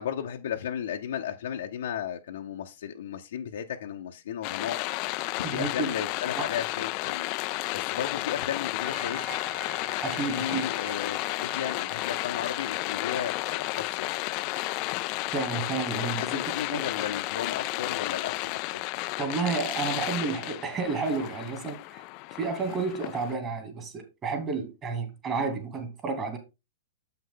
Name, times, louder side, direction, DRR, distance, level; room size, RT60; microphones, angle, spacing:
voice 1, 0.0-4.8 5.4-7.3 7.7-9.3 10.3-14.1 15.9-18.8, left 9 dB, 80° left, 0.8 m, -34 dB
sound 1, 4.4-23.4, left 21 dB, 45° left, 0.3 m, -32 dB
voice 2, 5.4-5.9 6.4-6.5 10.0-10.7 15.3-16.4 16.7-16.8 19.2-22.0 22.3-26.4, right 4 dB, 25° right, 2.2 m, -31 dB
sound 2, 8.8-14.9, right 3 dB, 10° right, 0.9 m, -46 dB
7.3 x 5.8 x 3.7 m
hypercardioid pair, 135°, 0 cm